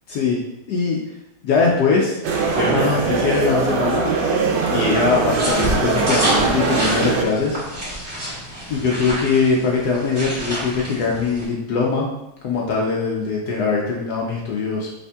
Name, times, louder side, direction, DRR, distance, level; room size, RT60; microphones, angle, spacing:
voice 1, 0.7-1.0 1.4-2.2 2.5-4.1 4.7-7.6 7.9-8.2 8.7-12.1 12.4-15.0, left 4 dB, 75° left, -2 dB, 0.9 m, -21 dB
sound 1, 2.2-7.2, right 4 dB, 65° right, 1.1 m, -21 dB
sound 2, 5.1-11.4, equal, 20° right, 1.5 m, -28 dB
5.3 x 3.4 x 2.3 m, 0.86 s
omnidirectional pair, 2.3 m